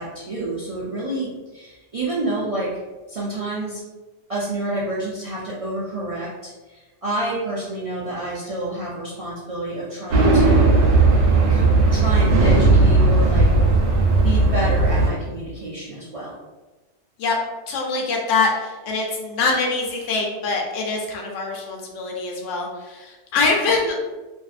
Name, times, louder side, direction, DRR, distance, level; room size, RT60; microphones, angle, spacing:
voice 1, 0.0-2.8 3.1-3.8 4.3-10.8 11.5-11.6 11.9-13.5 14.1-16.4, right 2 dB, 55° right, -8 dB, 0.4 m, -29 dB
sound 1, 10.1-15.1, right 3 dB, 70° right, 0.9 m, -16 dB
voice 2, 17.7-24.0, left 3 dB, 90° left, -1 dB, 1.0 m, -24 dB
2.5 x 2.5 x 2.4 m, 1.2 s
omnidirectional pair, 1.2 m